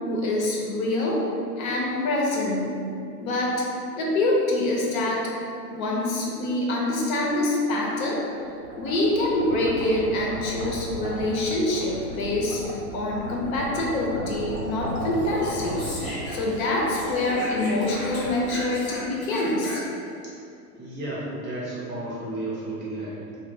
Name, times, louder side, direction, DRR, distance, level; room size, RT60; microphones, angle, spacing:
voice 1, 0.1-1.2 1.6-2.7 3.2-3.7 4.0-5.3 5.7-8.2 8.8-19.8, left 1 dB, 60° left, -3 dB, 0.7 m, -25 dB
sound 1, 8.2-19.3, right 2 dB, 75° right, 0.7 m, -36 dB
Speech, 15.0-16.7 17.0-20.1, left 1 dB, 25° left, 0.9 m, -36 dB
voice 2, 20.8-23.4, right 1 dB, 25° right, -7 dB, 0.6 m, -33 dB
2.1 x 2.1 x 3.3 m, 2.5 s
hypercardioid pair, 95°, 47 cm